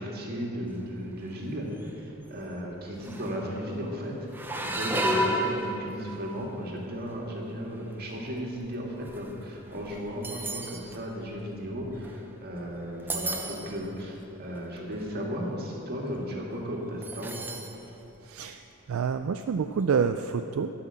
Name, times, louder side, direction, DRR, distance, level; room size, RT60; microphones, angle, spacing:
voice 1, 0.0-17.4, equal, 45° right, -1 dB, 1.9 m, -35 dB
sound 1, 1.0-1.4 1.7-2.0 2.7-2.8 3.0-3.5 4.3-6.4 7.1-7.4 8.1-12.5 12.9-13.9 14.5-14.6 14.9-15.2 17.0-17.8 18.1-18.2 19.6-19.7, right 1 dB, 10° right, 0.6 m, -33 dB
voice 2, 18.2-18.6 18.9-20.7, right 6 dB, 70° right, 8 dB, 0.3 m, -27 dB
12.0 x 5.7 x 7.5 m, 2.9 s
head